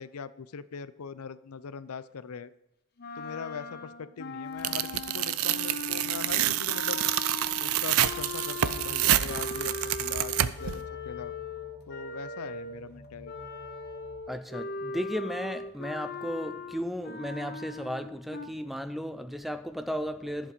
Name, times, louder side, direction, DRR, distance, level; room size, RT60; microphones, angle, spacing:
voice 1, 0.0-2.5 3.2-7.0 7.6-11.3 11.9-13.3, left 6 dB, 85° left, 0.5 m, -41 dB
sound 1, 3.0-12.8 13.2-18.5, left 3 dB, 45° left, 0.9 m, -39 dB
Tearing, 4.6-10.8, right 12 dB, 70° right, 0.5 m, -28 dB
sound 2, 8.6-14.2, left 1 dB, 15° left, 2.7 m, -49 dB
voice 2, 14.3-20.5, equal, ahead, 0.4 m, -35 dB
11.5 x 7.5 x 5.2 m
head